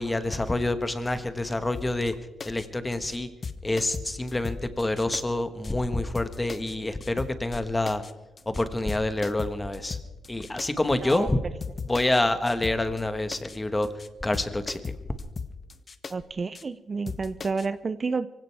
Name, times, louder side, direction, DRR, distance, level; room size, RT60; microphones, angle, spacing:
voice 1, 0.0-2.2 2.4-3.3 3.6-8.0 8.4-10.0 10.3-11.4 11.9-13.9 14.2-15.0, left 2 dB, 15° left, 10 dB, 1.3 m, -27 dB
sound 1, 1.7-2.1 2.4-2.7 2.9-3.2 3.4-5.2 5.6-5.7 6.1-6.7 7.0-7.6 7.9-8.1 8.4-8.6 8.9-10.7 11.1-11.2 11.6-12.2 12.5-13.0 13.3-13.6 13.8-14.1 14.3-16.1 16.5-16.6 17.1-17.7, left 4 dB, 35° left, 0.8 m, -38 dB
voice 2, 16.1-18.3, right 4 dB, 35° right, 13 dB, 0.5 m, -30 dB
24.5 x 17.0 x 3.4 m, 1.1 s
cardioid pair, 110°, 0 cm